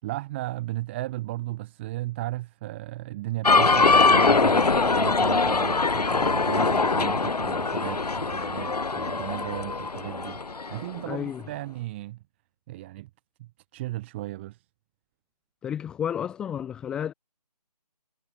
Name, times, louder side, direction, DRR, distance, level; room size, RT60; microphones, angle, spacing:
voice 1, 0.0-10.4 10.7-12.2 12.7-13.1 13.4-14.6, right 17 dB, 15° right, 6.0 m, -35 dB
sound 1, 3.4-11.1, left 4 dB, 70° left, 0.9 m, -22 dB
voice 2, 11.1-11.4 15.6-17.1, left 9 dB, 5° left, 1.0 m, -31 dB
figure-of-eight pair, 155°, 21 cm